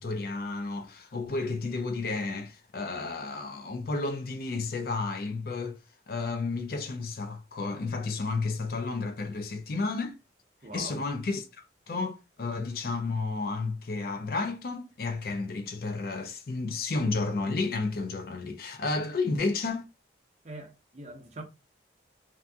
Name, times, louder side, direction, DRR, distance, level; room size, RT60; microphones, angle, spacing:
voice 1, 0.0-5.8 6.1-10.2 10.7-11.4 11.9-19.9, left 3 dB, 50° left, 0.4 m, -32 dB
voice 2, 10.6-11.1 20.4-21.4, right 2 dB, 40° right, 0.6 m, -43 dB
2.6 x 2.5 x 2.2 m
head